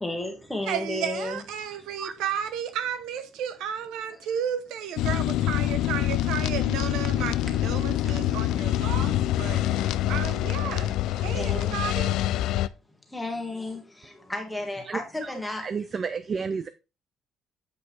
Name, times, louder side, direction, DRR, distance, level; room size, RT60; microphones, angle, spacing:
voice 1, 0.0-1.4 4.1-4.2 8.0-8.1 11.3-11.8 13.1-15.7, left 2 dB, 5° left, 1.7 m, -33 dB
voice 2, 0.7-12.2, right 9 dB, 85° right, 0.9 m, -33 dB
sound 1, 5.0-12.7, left 13 dB, 80° left, 0.3 m, -25 dB
voice 3, 14.8-15.3 15.6-16.7, right 5 dB, 30° right, 0.4 m, -31 dB
8.0 x 5.2 x 3.3 m
cardioid pair, 150°, 0 cm